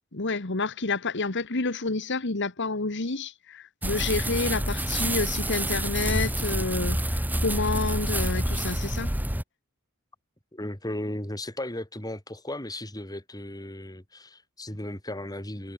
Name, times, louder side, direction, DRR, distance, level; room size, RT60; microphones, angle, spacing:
voice 1, 0.1-9.1, left 3 dB, 55° left, 1.7 m, -29 dB
sound 1, 3.8-9.4, right 1 dB, 10° right, 2.4 m, -28 dB
voice 2, 10.5-15.7, left 1 dB, 15° left, 4.7 m, -36 dB
head